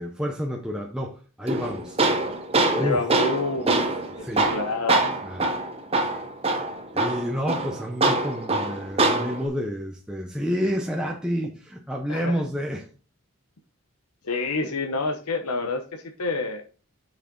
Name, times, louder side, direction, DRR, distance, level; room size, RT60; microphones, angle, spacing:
voice 1, 0.0-2.0 2.6-3.0 3.6-3.8 4.2-4.5 5.2-5.5 6.9-12.9, equal, 5° right, 0.8 m, -29 dB
Tools, 1.5-9.5, right 2 dB, 25° right, 1.1 m, -24 dB
voice 2, 2.8-3.8 4.4-5.1 12.1-12.4 14.2-16.6, left 3 dB, 90° left, 1.0 m, -28 dB
6.6 x 6.4 x 3.9 m
head